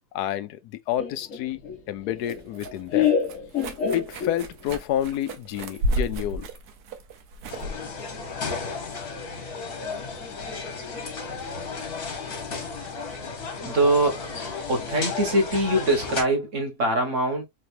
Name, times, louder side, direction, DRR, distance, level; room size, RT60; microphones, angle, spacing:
voice 1, 0.1-1.6 1.9-3.1 3.9-6.5, left 12 dB, 90° left, 1.2 m, -29 dB
Laughter, 1.0-4.6, left 8 dB, 55° left, 1.5 m, -27 dB
sound 1, 1.5-9.2, right 1 dB, 80° right, 1.4 m, -34 dB
sound 2, 7.5-16.2, left 4 dB, 70° left, 1.9 m, -34 dB
voice 2, 13.6-14.4 14.7-17.4, right 1 dB, 50° right, 1.8 m, -23 dB
4.3 x 3.3 x 2.8 m
omnidirectional pair, 1.6 m